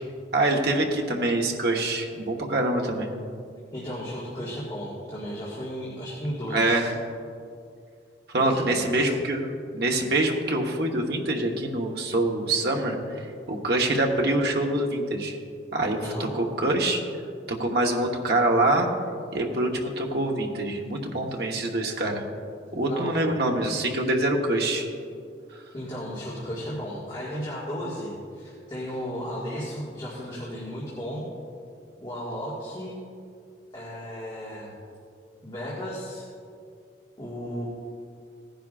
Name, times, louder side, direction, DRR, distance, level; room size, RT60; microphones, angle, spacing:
voice 1, 0.3-3.1 6.5-6.9 8.3-9.4 9.7-13.0 13.5-15.4 15.7-17.0 17.5-18.9 19.3-22.2 22.7-24.9, right 2 dB, 60° right, 1 dB, 1.2 m, -25 dB
voice 2, 3.7-6.9 8.4-9.1 16.0-16.3 22.9-23.3 25.7-31.2 32.0-33.0 33.7-34.7 35.4-36.2 37.2-37.7, equal, 25° left, -8 dB, 1.9 m, -34 dB
17.5 x 10.5 x 2.5 m, 2.3 s
head